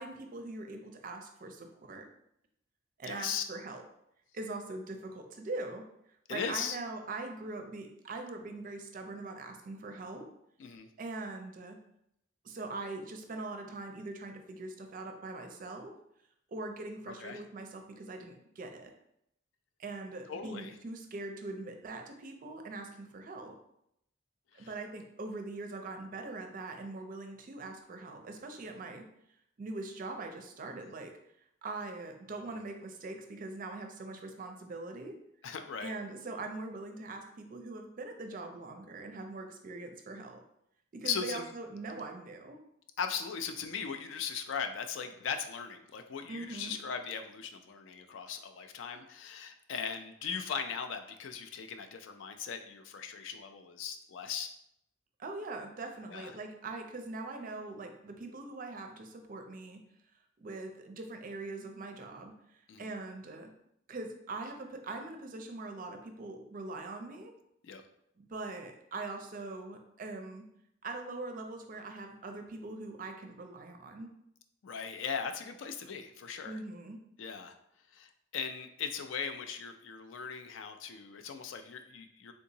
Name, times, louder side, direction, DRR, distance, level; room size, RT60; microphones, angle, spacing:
voice 1, 0.0-2.1 3.0-3.8 4.3-5.8 6.3-10.3 11.0-11.8 12.4-15.9 16.5-18.9 19.8-23.6 24.5-29.1 29.6-31.1 31.6-35.2 35.8-40.4 40.9-42.6 46.3-46.8 55.2-59.8 60.4-63.5 63.9-67.3 68.2-70.4 70.8-74.1 76.4-77.0, right 2 dB, 45° right, 5 dB, 0.4 m, -42 dB
voice 2, 3.0-3.4 6.3-6.8 10.6-10.9 17.1-17.4 20.3-20.7 24.5-24.7 35.4-35.9 41.0-41.5 43.0-54.6 56.1-56.3 62.7-62.9 67.6-67.8 74.6-76.6 77.2-77.5 77.9-82.3, left 6 dB, 75° left, 7 dB, 0.4 m, -38 dB
3.6 x 2.8 x 2.7 m, 0.76 s
head